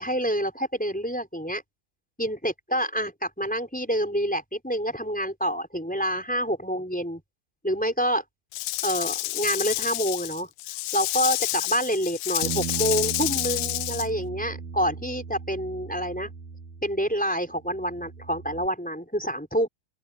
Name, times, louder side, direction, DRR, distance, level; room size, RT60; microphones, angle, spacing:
voice 1, 0.0-1.6 2.2-7.2 7.6-8.2 8.8-10.5 10.9-16.3 16.8-19.7, equal, ahead, 4.2 m, -27 dB
Rattle / Rattle (instrument), 8.5-14.1, left 20 dB, 80° left, 2.8 m, -29 dB
Bass guitar, 12.4-17.2 17.5-18.7, right 7 dB, 85° right, 1.6 m, -37 dB
open air
omnidirectional pair, 5.7 m